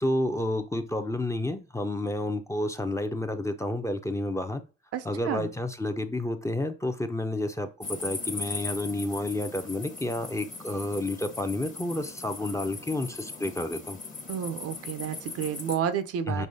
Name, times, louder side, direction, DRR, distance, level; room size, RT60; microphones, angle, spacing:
voice 1, 0.0-4.7 5.0-14.0 16.3-16.5, left 1 dB, 10° left, 0.6 m, -30 dB
voice 2, 4.9-5.5 14.3-16.5, right 8 dB, 55° right, 0.6 m, -31 dB
sound 1, 7.8-15.8, left 3 dB, 25° left, 1.0 m, -39 dB
5.5 x 3.0 x 2.7 m
hypercardioid pair, 60°, 29 cm